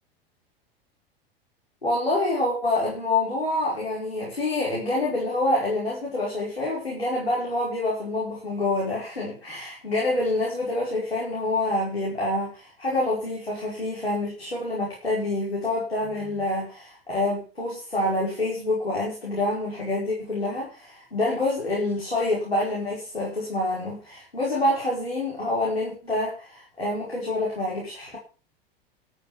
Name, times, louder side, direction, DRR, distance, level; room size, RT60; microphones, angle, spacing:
voice 1, 1.8-28.2, left 2 dB, 90° left, -4 dB, 5.6 m, -27 dB
14.0 x 7.8 x 6.5 m, 0.35 s
figure-of-eight pair, 85°, 30 cm